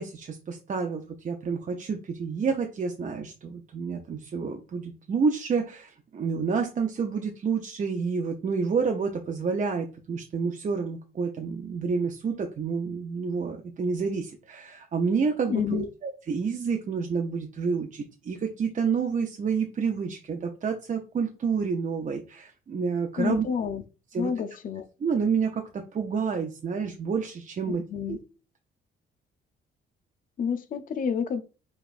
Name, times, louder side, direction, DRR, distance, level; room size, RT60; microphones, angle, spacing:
voice 1, 0.0-23.5 24.1-24.3 25.0-27.8 28.1-28.2, right 5 dB, 40° right, 0.6 m, -29 dB
voice 2, 15.5-15.9 23.2-23.8 24.1-24.9 27.9-28.2 30.4-31.4, left 7 dB, 45° left, 0.5 m, -29 dB
5.1 x 2.4 x 2.4 m
cardioid pair, 90°, 20 cm